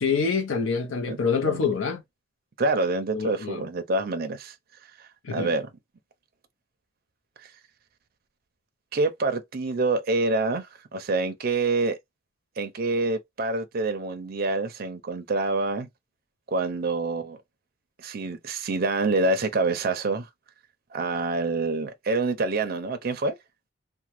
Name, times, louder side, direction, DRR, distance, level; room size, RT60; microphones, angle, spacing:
voice 1, 0.0-2.0 3.1-3.7 5.2-5.5, left 5 dB, 70° left, 0.6 m, -26 dB
voice 2, 2.6-4.5 5.0-5.7 8.9-12.0 12.6-15.9 16.5-17.4 18.0-20.3 20.9-23.3, right 3 dB, 45° right, 0.5 m, -26 dB
2.9 x 2.1 x 3.0 m
head